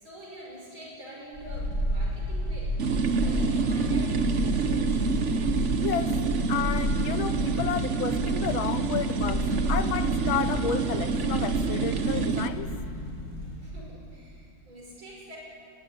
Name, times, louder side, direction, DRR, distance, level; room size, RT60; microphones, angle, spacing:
voice 1, 0.0-5.1 13.6-15.4, equal, 80° right, -2 dB, 6.4 m, -46 dB
sound 1, 1.3-13.7 14.0-14.1, equal, 45° left, 5.4 m, -32 dB
sound 2, 2.8-12.5, right 5 dB, 45° right, 1.2 m, -27 dB
voice 2, 5.8-6.2 6.5-12.7, left 9 dB, 80° left, 11 dB, 1.8 m, -32 dB
21.5 x 18.5 x 10.0 m, 2.6 s
omnidirectional pair, 2.2 m